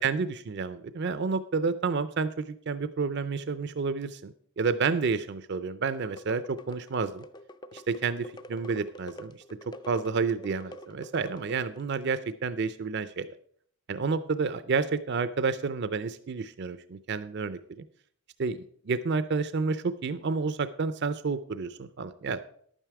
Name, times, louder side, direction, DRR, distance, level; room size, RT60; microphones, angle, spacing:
voice 1, 0.0-7.2 7.7-9.3 9.9-13.3 13.9-17.6 18.4-22.4, right 4 dB, 50° right, 13 dB, 0.4 m, -30 dB
sound 1, 5.9-11.9, equal, 20° left, 0.4 m, -47 dB
11.0 x 9.1 x 4.7 m, 0.62 s
head